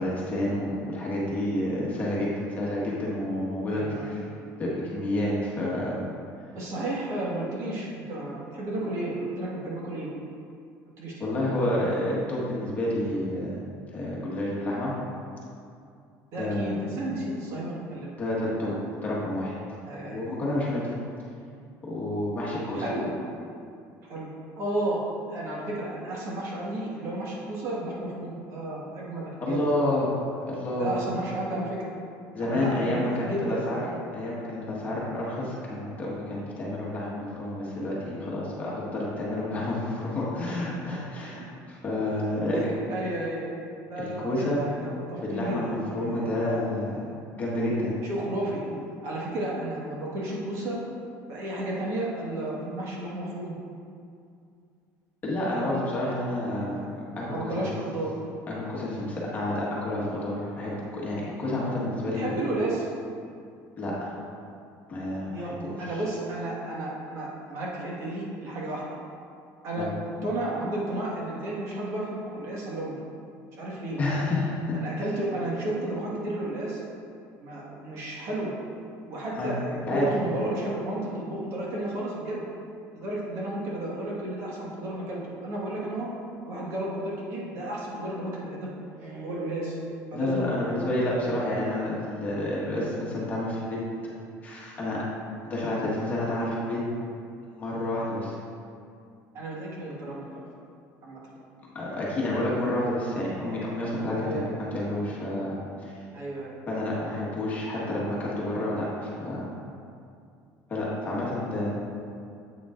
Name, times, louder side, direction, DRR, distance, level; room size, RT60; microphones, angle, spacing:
voice 1, 0.0-2.3 2.6-4.2 4.6-6.0 11.2-13.6 13.9-14.9 16.4-16.8 18.2-18.7 19.0-19.5 20.0-20.9 21.8-22.8 29.4-30.1 30.5-31.0 32.3-33.8 34.1-42.6 44.0-44.6 45.2-47.1 47.4-47.9 55.2-57.6 58.5-62.4 63.8-64.1 64.9-66.0 69.8-69.9 74.0-74.8 79.3-79.5 79.9-80.1 90.1-93.8 94.4-95.0 95.4-96.8 97.5-98.4 101.7-105.5 105.8-106.0 106.7-109.5 110.7-111.7, left 1 dB, 25° left, -6 dB, 1.5 m, -29 dB
voice 2, 3.7-4.1 6.5-10.1 11.0-11.1 11.5-11.7 16.3-18.1 18.4-18.7 19.8-20.2 22.7-23.1 24.1-24.3 24.6-29.6 30.8-31.9 32.4-33.6 41.3-41.4 42.5-43.5 43.9-46.3 48.0-48.6 49.0-50.8 51.3-53.6 55.5-55.8 56.7-56.9 57.3-58.1 62.1-62.8 65.3-68.8 69.6-69.9 70.2-73.0 73.6-74.0 74.7-76.8 77.4-78.5 79.1-82.4 82.9-86.1 86.5-90.8 99.3-100.4 101.0-101.2 104.1-104.6 106.1-106.6, right 1 dB, 50° right, -5 dB, 1.5 m, -32 dB
8.3 x 7.1 x 2.5 m, 2.4 s
cardioid pair, 155°, 6 cm